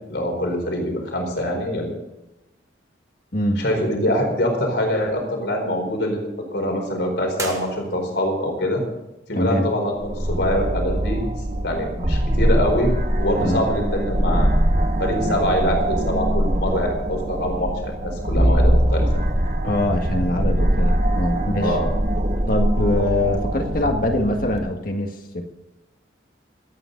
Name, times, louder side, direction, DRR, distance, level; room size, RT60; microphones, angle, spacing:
voice 1, 0.1-1.9 3.6-8.8 9.3-11.2 11.6-12.9 13.2-14.5 15.0-19.2 21.6-21.9, equal, 70° left, 2 dB, 4.5 m, -24 dB
sound 1, 7.3-8.4, right 3 dB, 15° right, 1.4 m, -35 dB
voice 2, 9.3-9.7 13.4-13.6 19.6-21.8 22.5-25.4, left 1 dB, 50° left, 3 dB, 1.9 m, -23 dB
sound 2, 10.0-24.6, right 1 dB, 40° right, 1.3 m, -22 dB
26.0 x 9.2 x 4.0 m, 0.98 s
head